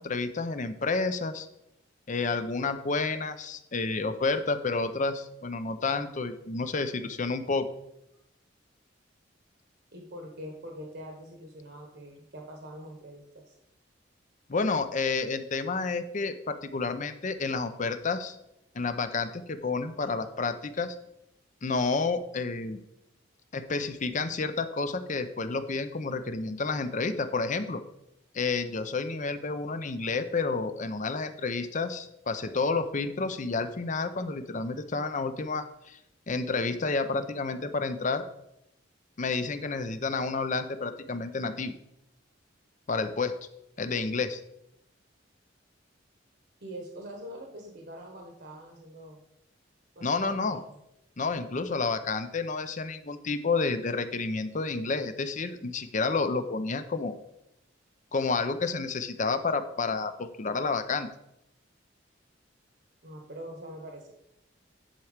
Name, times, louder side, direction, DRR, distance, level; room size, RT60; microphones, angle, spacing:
voice 1, 0.0-1.5 2.1-7.7 14.5-18.4 18.7-21.0 21.6-22.8 23.5-27.8 28.3-36.0 36.3-38.3 39.2-41.7 42.9-43.3 43.8-44.4 50.0-50.6 51.2-57.2 58.1-61.1, left 4 dB, 40° left, 10 dB, 0.6 m, -30 dB
voice 2, 9.9-13.5 46.6-49.2 49.9-50.7 63.0-64.1, equal, 60° right, 1 dB, 1.2 m, -44 dB
10.0 x 4.6 x 5.1 m, 0.85 s
head